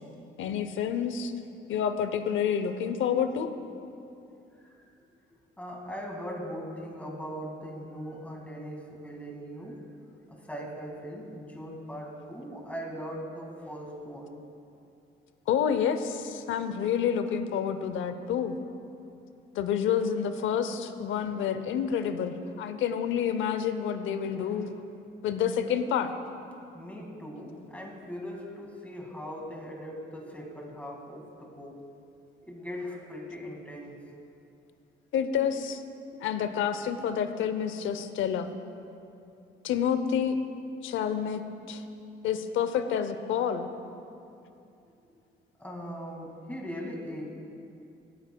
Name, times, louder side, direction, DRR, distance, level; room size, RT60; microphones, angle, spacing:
voice 1, 0.4-1.3 1.7-3.5 15.5-18.5 19.5-24.7 25.2-26.1 35.1-35.8 36.2-38.5 39.6-40.4 40.8-41.4 41.7-41.8 42.2-43.7, left 8 dB, 80° left, 10 dB, 0.7 m, -28 dB
voice 2, 4.5-5.1 5.6-9.8 10.3-14.4 24.3-24.8 26.7-31.8 32.4-34.0 45.6-47.2, equal, 5° left, -1 dB, 2.0 m, -40 dB
16.5 x 9.5 x 2.3 m, 2.6 s
cardioid pair, 90°, 20 cm